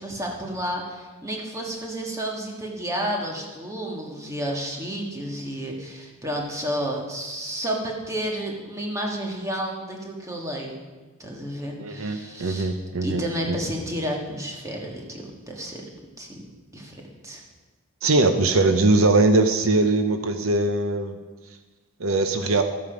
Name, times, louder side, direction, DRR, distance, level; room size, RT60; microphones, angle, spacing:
voice 1, 0.0-10.7 11.2-12.7 13.0-15.8 16.2-16.3 16.7-17.0 17.2-17.4, equal, 15° right, 0 dB, 1.7 m, -31 dB
voice 2, 11.8-13.2 13.5-13.6 18.0-21.2 22.0-22.6, right 2 dB, 70° right, 7 dB, 0.7 m, -21 dB
13.5 x 8.6 x 5.1 m, 1.3 s
head